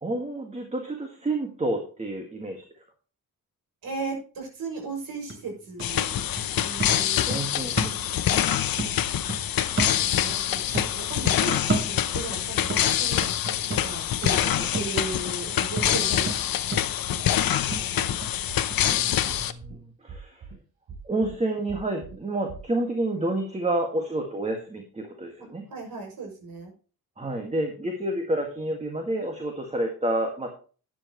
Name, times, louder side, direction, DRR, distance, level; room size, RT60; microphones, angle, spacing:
voice 1, 0.0-2.6 6.9-7.9 9.7-10.2 18.8-20.4 21.0-25.7 27.2-30.5, right 1 dB, 20° right, 2 dB, 2.0 m, -30 dB
voice 2, 3.8-7.8 10.0-13.2 13.8-16.8 17.1-18.1 25.7-26.7, right 3 dB, 65° right, 1 dB, 6.6 m, -37 dB
sound 1, 4.8-4.9 5.3-8.4 8.8-10.5 10.7-12.3 12.7-18.4 18.7-18.8, right 2 dB, 35° right, 3.4 m, -33 dB
sound 2, 5.8-19.5, left 11 dB, 65° left, 0.9 m, -25 dB
cardiac pulmonary Sounds, 17.7-18.2 18.5-19.0 19.3-19.8 20.1-20.6 20.9-21.4 21.7-22.2 22.5-22.6, right 5 dB, 85° right, 4.0 m, -41 dB
12.5 x 10.5 x 3.1 m, 0.37 s
wide cardioid pair, 170°, 37 cm